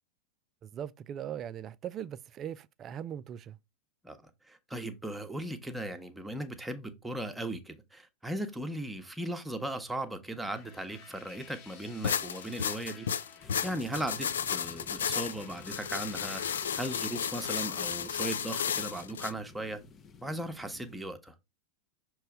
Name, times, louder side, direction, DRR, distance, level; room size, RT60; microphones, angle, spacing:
voice 1, 0.6-3.6, right 9 dB, 30° right, 0.4 m, -40 dB
voice 2, 4.5-13.1 13.6-16.4 16.8-19.8 20.2-21.3, right 1 dB, 5° right, 0.9 m, -37 dB
sound 1, 10.4-18.1, left 6 dB, 40° left, 1.1 m, -54 dB
sound 2, 12.0-19.3, left 8 dB, 65° left, 0.4 m, -33 dB
sound 3, 13.4-21.0, left 5 dB, 25° left, 0.6 m, -53 dB
6.6 x 3.1 x 4.8 m
figure-of-eight pair, 90°, 0 cm